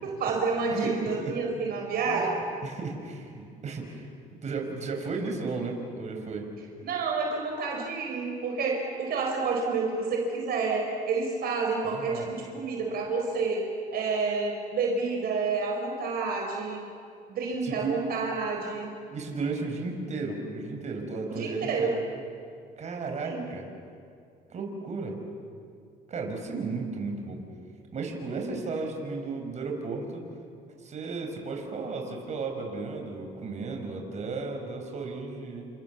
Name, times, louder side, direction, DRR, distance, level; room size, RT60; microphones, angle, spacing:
voice 1, 0.0-2.3 6.8-13.7 13.9-16.8 17.3-18.9 21.3-21.9 23.2-23.4, right 4 dB, 65° right, 1 dB, 4.7 m, -29 dB
voice 2, 0.7-1.3 2.1-2.2 2.6-6.5 11.8-12.3 17.6-18.0 19.1-22.0 22.8-23.7 24.5-25.2 26.1-27.4 27.9-30.2 30.8-35.7, right 3 dB, 45° right, 2 dB, 5.4 m, -34 dB
29.5 x 27.0 x 7.3 m, 2.3 s
cardioid pair, 110°, 17 cm